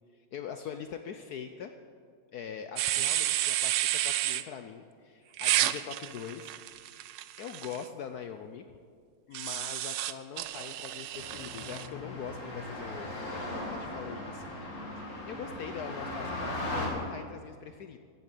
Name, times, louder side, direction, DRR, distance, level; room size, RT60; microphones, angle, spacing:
voice 1, 0.1-1.7 2.3-7.1 7.4-8.8 9.3-18.0, left 7 dB, 70° left, 7 dB, 0.9 m, -43 dB
sound 1, 2.8-4.4 5.4-7.8 9.3-11.9, right 14 dB, 75° right, 1.1 m, -31 dB
sound 2, 11.1-16.9, left 1 dB, 40° left, 3.1 m, -38 dB
14.5 x 8.5 x 9.0 m, 2.1 s
omnidirectional pair, 2.2 m